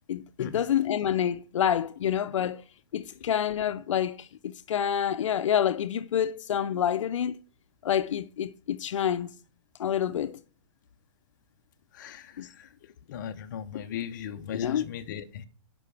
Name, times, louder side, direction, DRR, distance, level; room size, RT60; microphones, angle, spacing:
voice 1, 0.1-2.6 2.9-7.4 7.8-9.3 9.8-10.4 12.4-12.5 14.5-14.8, left 9 dB, 85° left, 0.6 m, -28 dB
voice 2, 11.9-12.7 13.1-15.4, left 8 dB, 40° left, 0.7 m, -38 dB
10.5 x 5.5 x 3.4 m
hypercardioid pair, 175°, 16 cm